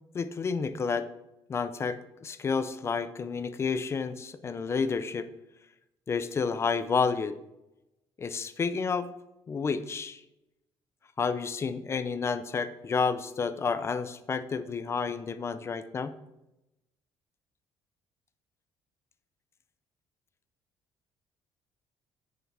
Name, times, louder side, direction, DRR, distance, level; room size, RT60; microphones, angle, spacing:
voice 1, 0.1-1.1 1.5-5.3 6.1-7.4 8.2-9.1 9.5-10.2 11.2-16.1, left 5 dB, 25° left, 13 dB, 0.5 m, -30 dB
9.5 x 5.8 x 4.7 m, 0.92 s
cardioid pair, 150°, 10 cm